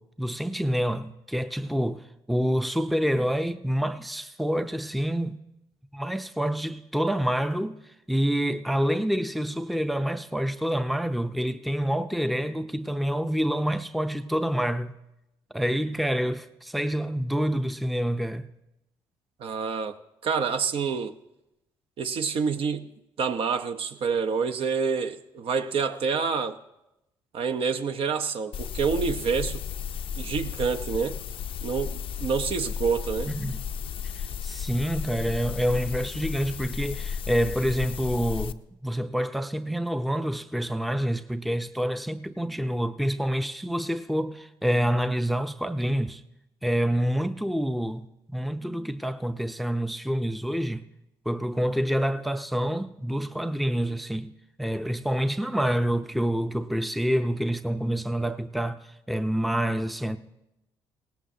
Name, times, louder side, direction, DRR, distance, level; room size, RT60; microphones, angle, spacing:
voice 1, 0.0-5.4 5.9-7.8 8.1-14.9 15.5-18.5 33.3-33.6 34.1-46.2 46.6-50.9 51.3-54.3 54.6-58.8 59.1-60.2, equal, ahead, 0.6 m, -27 dB
voice 2, 19.4-20.0 20.2-21.2 22.0-22.9 23.2-26.6 27.3-29.6 30.2-31.2 31.6-33.3, right 5 dB, 60° right, 0.8 m, -27 dB
sound 1, 28.5-38.5, left 8 dB, 60° left, 0.5 m, -34 dB
18.0 x 17.5 x 2.8 m
cardioid pair, 80°, 11 cm